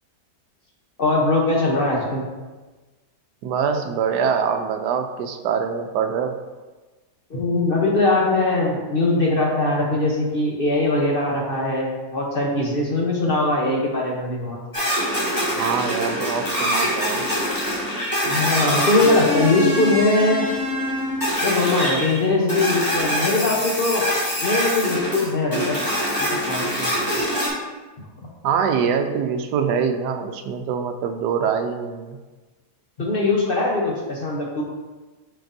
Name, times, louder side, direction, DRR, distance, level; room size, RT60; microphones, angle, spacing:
voice 1, 1.0-2.2 7.3-14.6 18.2-20.5 21.4-24.0 24.4-25.8 26.4-26.9 33.0-34.6, left 2 dB, 45° left, -2 dB, 0.9 m, -21 dB
voice 2, 3.4-6.3 15.6-17.2 28.4-32.2, right 6 dB, 85° right, 7 dB, 1.2 m, -24 dB
sound 1, 14.7-27.5, equal, 10° left, 1.9 m, -24 dB
9.2 x 4.3 x 2.7 m, 1.3 s
omnidirectional pair, 1.7 m